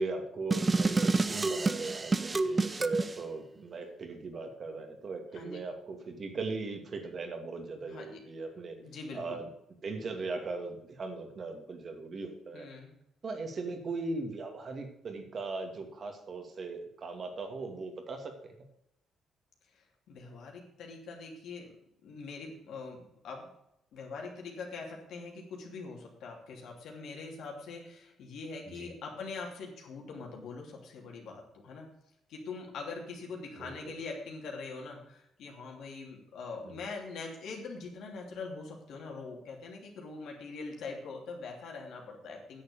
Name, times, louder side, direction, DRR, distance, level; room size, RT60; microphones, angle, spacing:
voice 1, 0.0-8.8 9.1-9.5 9.8-12.7 13.2-18.5 28.7-28.9 33.6-33.9 36.6-36.8, right 3 dB, 45° right, 5 dB, 2.4 m, -39 dB
sound 1, 0.5-3.1, right 3 dB, 25° right, 0.7 m, -28 dB
voice 2, 7.9-8.2 8.8-9.4 12.5-12.9 19.7-21.7 22.0-23.5 23.9-31.9 32.3-42.6, left 4 dB, 75° left, 0 dB, 3.0 m, -43 dB
9.8 x 6.8 x 6.9 m, 0.79 s
cardioid pair, 90°, 0 cm